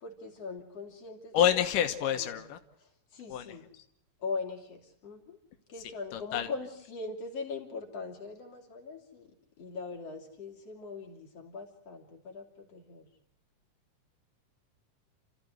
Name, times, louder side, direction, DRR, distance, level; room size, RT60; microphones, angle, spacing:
voice 1, 0.0-1.6 2.0-3.6 4.2-5.4 5.7-9.3 9.6-13.1, left 4 dB, 50° left, 2 dB, 3.9 m, -41 dB
voice 2, 1.3-2.6 3.3-3.5 6.1-6.5, left 10 dB, 90° left, 8 dB, 2.8 m, -27 dB
29.5 x 14.5 x 7.8 m, 0.75 s
omnidirectional pair, 3.7 m